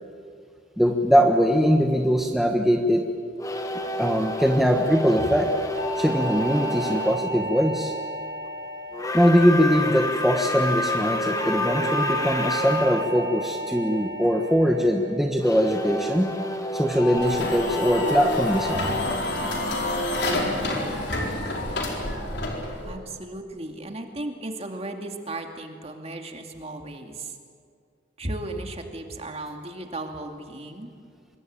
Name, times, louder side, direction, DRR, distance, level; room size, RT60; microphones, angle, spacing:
voice 1, 0.8-3.0 4.0-5.5 6.0-7.9 9.1-16.3 16.7-18.9, equal, ahead, 2 dB, 1.3 m, -21 dB
sound 1, 3.4-7.2 8.9-13.1 15.4-20.2, left 1 dB, 20° left, 1.7 m, -29 dB
sound 2, 5.8-10.2 11.4-15.8 17.0-17.3 17.7-18.1 18.5-18.9 19.3-19.7 20.1-20.5 20.9-21.3, right 1 dB, 50° right, 3.5 m, -34 dB
sound 3, 17.2-23.0, left 1 dB, 60° left, 4.6 m, -28 dB
voice 2, 22.9-27.4 28.2-30.9, right 2 dB, 35° right, 4 dB, 2.5 m, -35 dB
26.0 x 22.5 x 9.0 m, 2.2 s
head